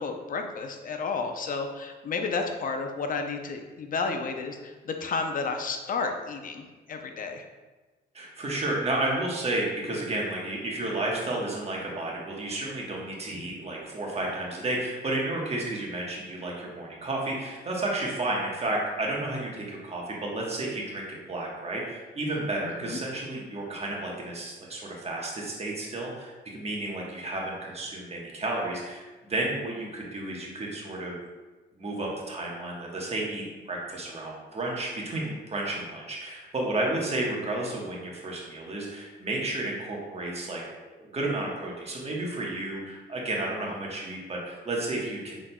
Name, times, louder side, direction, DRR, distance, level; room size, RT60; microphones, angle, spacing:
voice 1, 0.0-7.4 22.8-23.0, left 4 dB, 45° left, 4 dB, 0.6 m, -32 dB
voice 2, 8.1-31.2 31.8-45.4, right 2 dB, 30° right, -2 dB, 1.2 m, -32 dB
5.8 x 3.7 x 2.3 m, 1.2 s
cardioid pair, 90°, 20 cm